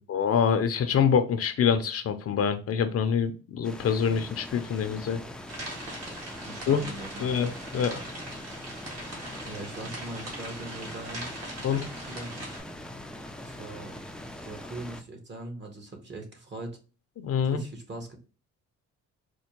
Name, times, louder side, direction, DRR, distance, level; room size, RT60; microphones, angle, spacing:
voice 1, 0.1-5.2 6.7-6.8 7.2-8.1 11.6-11.9 17.2-17.6, left 7 dB, 50° left, 9 dB, 0.5 m, -25 dB
sound 1, 3.6-15.0, left 1 dB, 5° left, 0.4 m, -42 dB
sound 2, 5.5-12.6, right 1 dB, 55° right, 1.7 m, -41 dB
voice 2, 6.4-7.5 9.4-11.3 11.9-12.4 13.4-14.0 14.3-16.8 17.4-18.2, right 2 dB, 35° right, 4 dB, 1.1 m, -41 dB
4.3 x 2.2 x 2.9 m, 0.35 s
cardioid pair, 90°, 30 cm